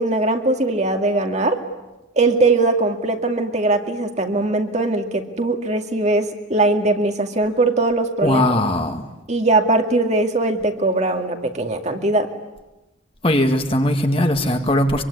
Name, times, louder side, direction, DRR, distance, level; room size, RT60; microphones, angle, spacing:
voice 1, 0.0-1.6 2.2-8.4 9.3-12.3, right 2 dB, 35° right, 4 dB, 2.3 m, -20 dB
voice 2, 8.2-9.0 13.2-15.0, left 1 dB, 30° left, 5 dB, 2.2 m, -19 dB
25.0 x 24.0 x 9.8 m, 1.0 s
head